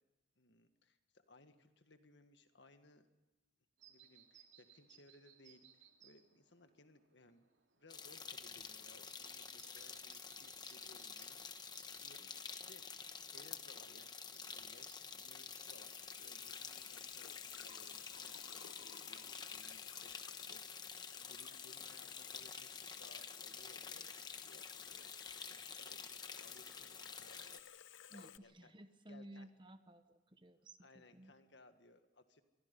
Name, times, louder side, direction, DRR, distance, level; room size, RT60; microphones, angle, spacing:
voice 1, 0.4-3.1 3.9-7.5 7.7-11.7 11.9-24.0 24.4-26.1 26.4-27.6 28.1-28.7 29.1-29.5 30.8-32.4, left 2 dB, 65° left, 8 dB, 1.7 m, -64 dB
sound 1, 3.8-17.3, right 9 dB, 75° right, 2.6 m, -67 dB
sound 2, 7.9-27.6, left 5 dB, 20° left, 1.1 m, -49 dB
Water tap faucet / Sink (filling or washing), 14.7-28.4, left 11 dB, 85° left, 0.7 m, -56 dB
voice 2, 28.1-31.3, right 1 dB, 25° right, 10 dB, 1.1 m, -56 dB
27.5 x 23.5 x 5.5 m, 1.1 s
head